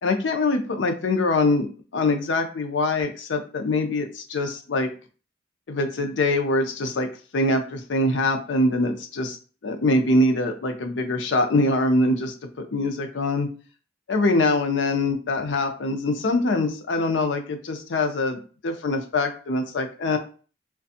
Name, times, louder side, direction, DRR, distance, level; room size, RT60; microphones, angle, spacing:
voice 1, 0.0-1.7 1.9-4.9 5.7-7.1 7.3-9.4 9.6-13.5 14.1-20.2, left 2 dB, 85° left, 5 dB, 0.5 m, -23 dB
2.5 x 2.3 x 2.6 m, 0.38 s
head